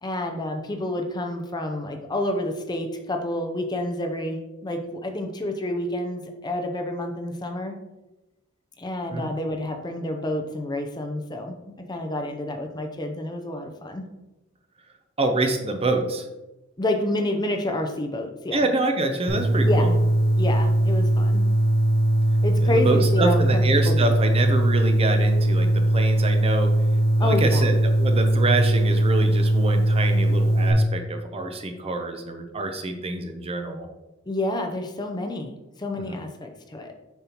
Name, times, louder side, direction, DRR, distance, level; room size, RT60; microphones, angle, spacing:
voice 1, 0.0-7.7 8.8-14.1 16.8-18.7 19.6-20.0 20.4-21.4 22.4-24.1 27.2-27.6 34.3-35.5 35.8-37.0, left 1 dB, 20° left, 4 dB, 0.6 m, -29 dB
voice 2, 15.2-16.2 18.5-19.9 22.6-25.7 25.9-26.7 27.2-27.7 28.0-33.9 36.1-36.2, right 2 dB, 30° right, 5 dB, 0.6 m, -26 dB
sound 1, 19.3-30.7, right 1 dB, 50° right, 1.3 m, -20 dB
7.0 x 5.4 x 2.9 m, 1.0 s
head